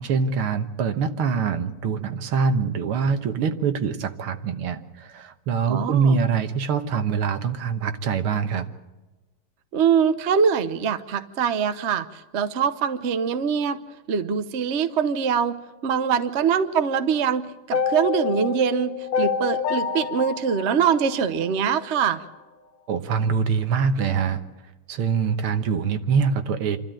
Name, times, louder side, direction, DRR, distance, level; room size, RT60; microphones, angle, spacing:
voice 1, 0.0-8.7 22.9-24.4 24.9-26.8, right 6 dB, 80° right, 9 dB, 2.1 m, -24 dB
voice 2, 5.7-6.2 9.7-13.8 14.1-15.5 15.8-22.2, right 7 dB, 45° right, 10 dB, 0.9 m, -23 dB
sound 1, 17.7-21.9, left 6 dB, 65° left, 1.8 m, -27 dB
27.0 x 13.0 x 9.0 m, 1.2 s
omnidirectional pair, 2.4 m